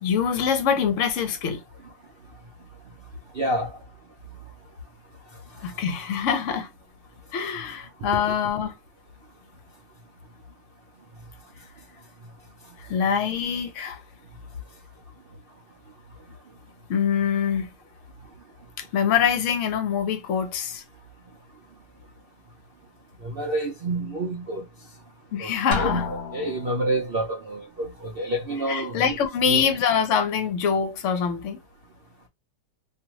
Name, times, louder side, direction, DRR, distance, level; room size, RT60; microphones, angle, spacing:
voice 1, 0.0-1.6 5.6-6.7 7.3-8.7 12.9-14.0 16.9-17.7 18.8-20.8 25.3-26.1 28.7-31.6, left 7 dB, 55° left, 0.9 m, -24 dB
voice 2, 3.4-3.7 23.2-24.6 25.4-29.2 29.4-29.7, right 1 dB, 60° right, 0.6 m, -28 dB
Drum, 25.7-26.9, left 5 dB, 90° left, 0.5 m, -30 dB
2.7 x 2.5 x 2.9 m
omnidirectional pair, 1.8 m